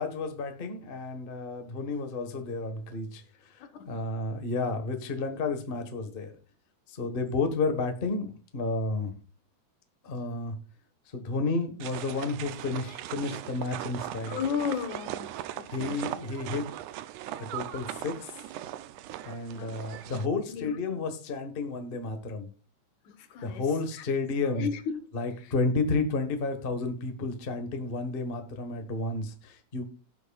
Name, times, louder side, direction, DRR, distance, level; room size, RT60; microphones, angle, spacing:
voice 1, 0.0-6.3 6.9-9.1 10.0-10.5 11.1-14.4 15.7-16.7 17.4-18.3 19.2-22.5 23.4-24.7 25.1-29.9, left 3 dB, 45° left, 0.6 m, -31 dB
voice 2, 3.6-4.0 14.3-15.3 15.6-16.0 19.5-19.9 20.5-21.1 23.1-23.7 24.0-24.1 24.5-25.1 25.4-25.5, left 7 dB, 80° left, 2.6 m, -35 dB
sound 1, 11.8-20.3, right 13 dB, 85° right, 2.1 m, -39 dB
17.5 x 7.8 x 2.4 m
omnidirectional pair, 3.4 m